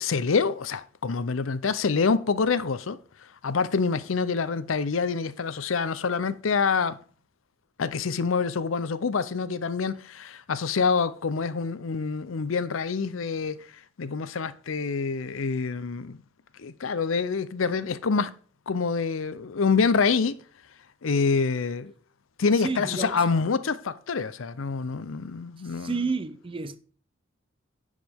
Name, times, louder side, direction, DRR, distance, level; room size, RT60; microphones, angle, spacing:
voice 1, 0.0-3.0 3.4-7.0 7.8-13.7 14.0-16.2 16.6-18.3 18.7-20.4 21.0-21.9 22.4-25.9, left 5 dB, 90° left, 0.6 m, -26 dB
voice 2, 22.6-23.2 25.6-26.8, right 4 dB, 25° right, 0.6 m, -31 dB
10.5 x 5.0 x 3.5 m
head